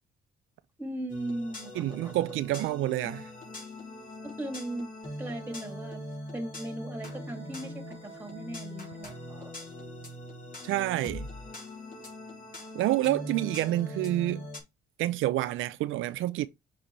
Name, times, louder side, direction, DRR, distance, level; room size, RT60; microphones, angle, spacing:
voice 1, 0.8-2.1 4.2-4.9 5.2-6.0 6.3-9.5, right 1 dB, 10° right, 2.0 m, -38 dB
sound 1, 1.1-14.6, left 1 dB, 45° left, 3.6 m, -42 dB
voice 2, 1.8-3.3 10.6-11.3 12.7-14.5 15.0-16.5, right 15 dB, 85° right, 0.5 m, -28 dB
7.4 x 4.2 x 3.1 m
cardioid pair, 90°, 20 cm